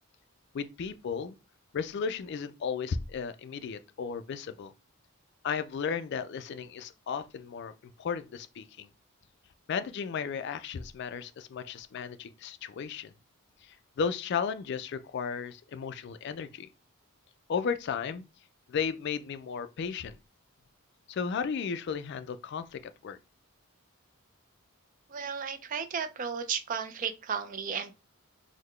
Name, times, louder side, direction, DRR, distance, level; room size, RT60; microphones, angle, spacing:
voice 1, 0.5-1.4 1.7-4.7 5.4-8.9 9.7-13.1 13.6-16.7 17.5-18.2 18.7-20.2 21.1-23.2, left 6 dB, 50° left, 0.3 m, -34 dB
voice 2, 25.1-27.9, right 6 dB, 35° right, 0.4 m, -34 dB
3.8 x 2.1 x 3.1 m
head